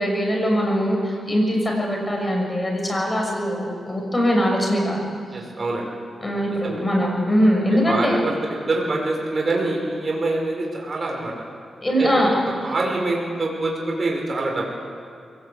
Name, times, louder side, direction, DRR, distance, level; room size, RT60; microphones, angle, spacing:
voice 1, 0.0-5.1 6.2-8.3 11.8-12.3 12.6-12.7, equal, 15° left, 0 dB, 6.2 m, -21 dB
voice 2, 5.3-5.9 6.6-6.8 7.7-11.3 12.0-12.2 12.6-14.7, right 2 dB, 40° right, -1 dB, 5.3 m, -25 dB
22.5 x 18.5 x 8.3 m, 2.3 s
wide cardioid pair, 105°, 0 cm